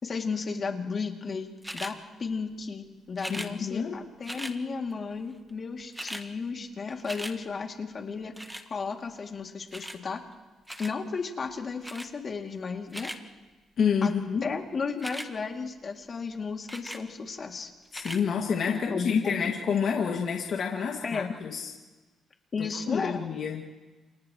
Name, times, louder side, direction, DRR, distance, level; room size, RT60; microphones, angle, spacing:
voice 1, 0.0-8.3 8.7-10.2 10.8-13.1 14.0-14.1 14.4-17.7 18.7-19.5 21.0-21.3 22.5-23.2, left 5 dB, 45° left, 2 dB, 2.6 m, -34 dB
sound 1, 1.6-2.0 3.2-3.5 4.2-4.6 5.5-5.6 5.8-6.3 6.6-7.4 8.4-8.7 9.7-10.0 10.7-11.0 11.8-12.1 12.7-13.2 14.9-15.3 16.7-17.0 17.9-18.2 18.9-19.0, equal, 5° right, 1.5 m, -38 dB
voice 2, 3.3-4.0 13.8-14.5 17.9-21.7 22.6-23.7, left 6 dB, 60° left, 0 dB, 2.2 m, -28 dB
29.5 x 28.5 x 3.2 m, 1.2 s
cardioid pair, 90°, 0 cm